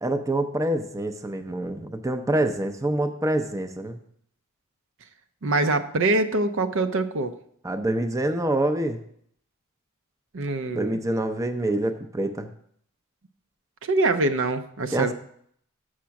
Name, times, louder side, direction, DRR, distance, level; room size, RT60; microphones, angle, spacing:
voice 1, 0.0-4.0 7.6-9.0 10.7-12.5 14.9-15.1, right 1 dB, 15° right, 7 dB, 0.6 m, -26 dB
voice 2, 5.4-7.3 10.3-11.0 13.8-15.1, right 2 dB, 65° right, 8 dB, 0.7 m, -24 dB
7.3 x 6.3 x 5.8 m, 0.66 s
head